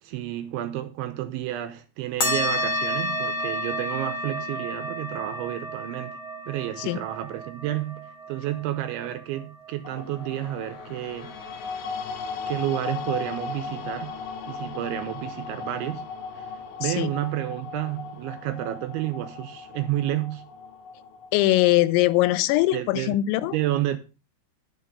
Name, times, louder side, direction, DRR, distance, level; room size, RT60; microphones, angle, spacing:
voice 1, 0.0-6.2 6.5-11.4 12.5-14.1 14.5-16.0 16.3-20.4 22.7-23.2 23.5-24.0, right 13 dB, 80° right, 2.9 m, -30 dB
sound 1, 2.2-11.1, left 1 dB, 35° left, 2.2 m, -31 dB
sound 2, 9.8-22.1, left 4 dB, 65° left, 3.3 m, -37 dB
voice 2, 16.8-17.1 21.3-23.6, left 16 dB, 85° left, 3.3 m, -21 dB
11.5 x 7.0 x 5.3 m
omnidirectional pair, 6.0 m